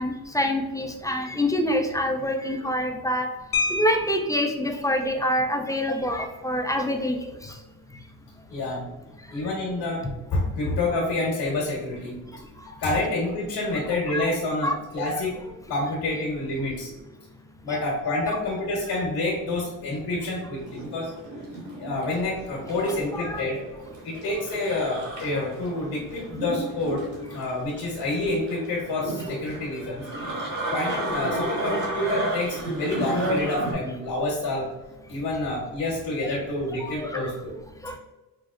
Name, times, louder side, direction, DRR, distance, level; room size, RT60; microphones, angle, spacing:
voice 1, 0.0-3.3 3.7-7.2 14.1-14.2 14.6-14.7 15.1-15.2 23.1-23.4, left 1 dB, 10° left, 3 dB, 0.4 m, -25 dB
sound 1, 3.5-4.6 6.0-6.2 6.5-6.7 7.1-7.4, left 3 dB, 55° left, 0.8 m, -29 dB
voice 2, 8.5-8.9 9.3-10.0 10.3-12.2 12.8-15.3 15.7-16.9 17.6-21.1 21.8-23.6 24.0-30.0 30.7-34.7 35.1-37.5, left 2 dB, 70° left, -3 dB, 1.3 m, -28 dB
sound 2, 20.5-33.7, right 1 dB, 45° right, 1.4 m, -32 dB
4.9 x 2.0 x 2.4 m, 1.1 s
cardioid pair, 85°, 40 cm